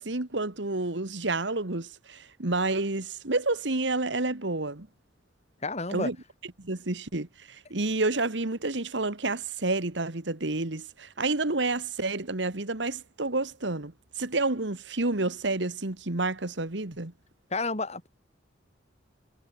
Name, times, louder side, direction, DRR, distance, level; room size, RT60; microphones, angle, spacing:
voice 1, 0.0-4.9 5.9-6.2 6.6-13.9 14.2-17.1, right 2 dB, 65° right, 1.8 m, -29 dB
voice 2, 5.6-6.1 17.5-18.1, left 3 dB, 35° left, 4.1 m, -30 dB
head